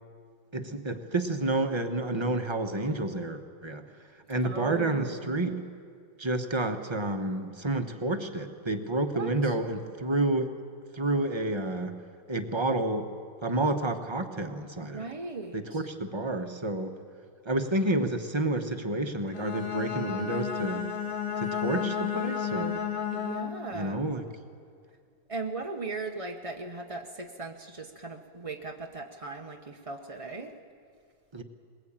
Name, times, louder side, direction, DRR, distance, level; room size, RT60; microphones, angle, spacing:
voice 1, 0.5-3.8 4.3-5.6 6.2-10.5 10.9-12.0 12.3-13.1 13.4-15.0 15.5-16.9 17.4-20.9 21.4-22.8 23.7-24.2 31.3-31.4, right 2 dB, 20° right, 6 dB, 0.7 m, -29 dB
voice 2, 4.4-5.3 9.1-9.5 14.8-15.8 23.1-24.0 25.3-30.5, right 3 dB, 50° right, 2 dB, 0.4 m, -38 dB
Bowed string instrument, 19.3-23.8, left 8 dB, 70° left, 2.1 m, -32 dB
21.5 x 20.0 x 8.8 m, 2.2 s
omnidirectional pair, 2.3 m